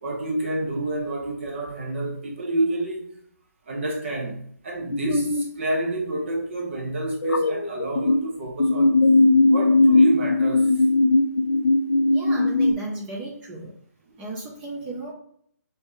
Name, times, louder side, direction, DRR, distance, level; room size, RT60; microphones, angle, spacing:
voice 1, 0.0-3.2 3.7-9.0 9.5-10.8 14.1-14.2, right 2 dB, 45° right, 0.7 m, -29 dB
sound 1, 4.9-5.4 7.2-8.2 8.6-12.7, left 2 dB, 90° left, 0.4 m, -19 dB
voice 2, 12.1-13.7 14.2-15.1, right 2 dB, 10° right, 0.4 m, -34 dB
3.0 x 2.7 x 3.4 m
hypercardioid pair, 160°, 9 cm